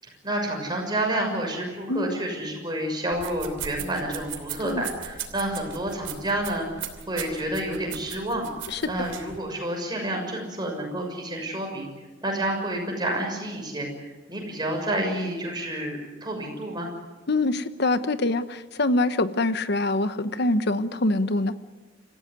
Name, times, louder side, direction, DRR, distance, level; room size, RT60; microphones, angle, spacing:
voice 1, 0.0-11.9 12.2-16.9, right 1 dB, 25° right, 1 dB, 6.5 m, -29 dB
sound 1, 3.1-9.4, right 8 dB, 80° right, 3.0 m, -39 dB
voice 2, 17.3-21.5, left 2 dB, 60° left, 12 dB, 1.1 m, -24 dB
27.0 x 15.0 x 9.5 m, 1.2 s
head